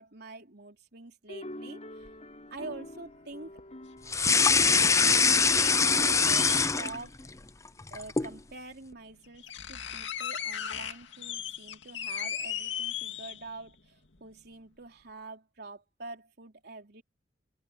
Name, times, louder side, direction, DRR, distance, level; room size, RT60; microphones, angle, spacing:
voice 1, 0.0-2.1 2.5-3.5 5.7-7.2 7.9-17.0, right 3 dB, 60° right, 3.8 m, -45 dB
sound 1, 1.3-6.8, left 1 dB, 40° left, 5.6 m, -47 dB
sound 2, 2.0-2.1 3.6-3.7 4.5-6.8 8.2-8.3 8.9-9.0 9.2-13.7 14.1-14.2, left 9 dB, 85° left, 2.4 m, -37 dB
sound 3, 4.1-7.3 7.7-8.4, left 5 dB, 15° left, 0.6 m, -23 dB
open air
head